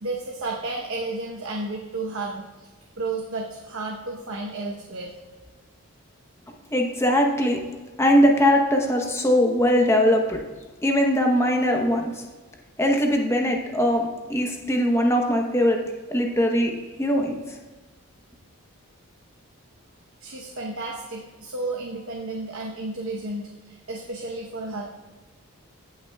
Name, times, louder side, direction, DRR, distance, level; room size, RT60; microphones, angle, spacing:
voice 1, 0.0-2.7 3.0-5.1 20.2-25.0, right 2 dB, 70° right, -1 dB, 0.9 m, -32 dB
voice 2, 6.7-7.6 8.0-10.4 10.8-12.2 12.8-15.8 16.1-16.7 17.0-17.4, equal, 10° left, 2 dB, 0.8 m, -21 dB
16.5 x 5.8 x 2.3 m, 1.3 s
head